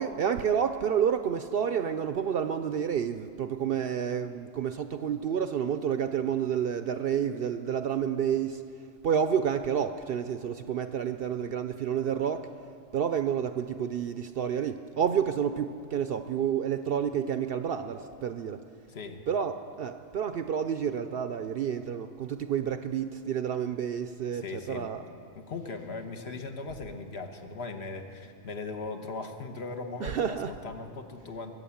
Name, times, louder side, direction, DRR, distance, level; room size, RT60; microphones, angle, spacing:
voice 1, 0.0-8.6 9.0-12.5 12.9-18.6 19.3-25.0 30.0-30.5, right 8 dB, 60° right, 10 dB, 0.6 m, -29 dB
voice 2, 18.9-19.2 24.3-24.9 25.3-31.6, left 3 dB, 60° left, 6 dB, 1.3 m, -39 dB
22.5 x 8.4 x 7.1 m, 2.5 s
omnidirectional pair, 1.3 m